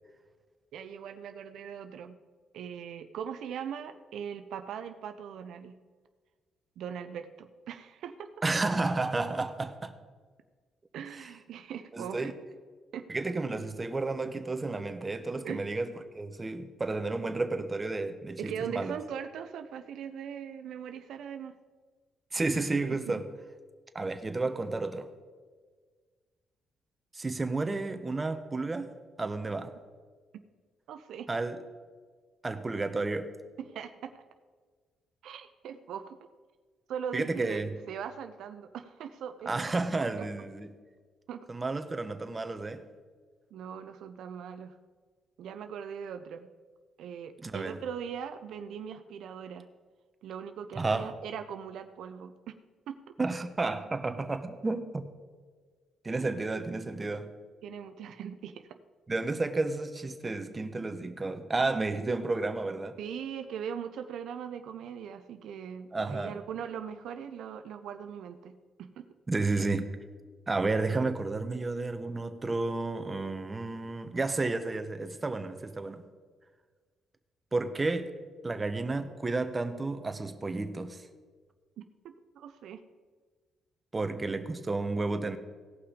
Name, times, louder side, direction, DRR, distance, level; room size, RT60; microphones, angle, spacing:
voice 1, 0.7-2.1 2.5-5.7 6.8-8.3 10.9-12.2 12.9-13.0 15.4-15.6 18.4-21.5 23.1-23.2 24.0-24.1 30.9-31.3 33.6-34.1 35.2-36.2 36.9-37.6 37.9-39.6 40.2-40.3 41.3-41.5 43.5-44.7 45.4-46.5 47.0-49.7 50.2-52.5 52.9-53.1 57.6-58.8 63.0-68.5 68.8-69.1 81.8-82.8, right 8 dB, 75° right, 8 dB, 0.5 m, -40 dB
voice 2, 8.4-9.9 11.9-12.3 13.1-19.0 22.3-23.3 23.9-25.1 27.1-28.9 29.2-29.7 31.3-31.6 32.4-33.3 37.1-37.7 39.5-40.7 41.5-42.8 47.4-47.8 50.8-51.1 53.2-55.1 56.0-57.3 59.1-63.0 65.9-66.4 69.3-70.0 70.5-76.0 77.5-78.1 78.4-81.0 83.9-85.4, right 3 dB, 25° right, 8 dB, 0.9 m, -31 dB
17.0 x 5.8 x 5.0 m, 1.5 s
cardioid pair, 90°, 0 cm